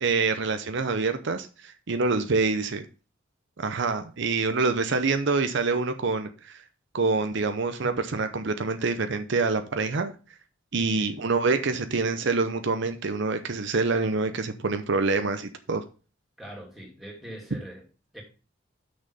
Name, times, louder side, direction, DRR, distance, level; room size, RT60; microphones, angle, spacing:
voice 1, 0.0-2.8 3.6-6.6 6.9-10.1 10.7-15.8, right 4 dB, 65° right, 0.7 m, -26 dB
voice 2, 10.8-11.1 16.4-17.8 18.1-18.2, right 1 dB, ahead, 2.7 m, -42 dB
6.3 x 6.3 x 5.3 m
head